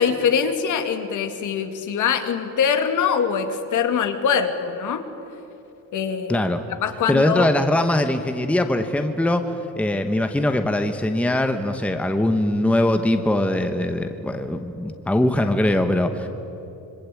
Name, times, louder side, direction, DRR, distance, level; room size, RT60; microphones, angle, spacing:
voice 1, 0.0-5.0 5.9-6.4 6.8-7.5, left 7 dB, 60° left, 7 dB, 2.5 m, -23 dB
voice 2, 6.3-6.6 7.1-9.4 9.8-16.3, left 1 dB, 5° left, 7 dB, 1.1 m, -21 dB
26.5 x 25.0 x 8.6 m, 2.9 s
cardioid pair, 165°, 35 cm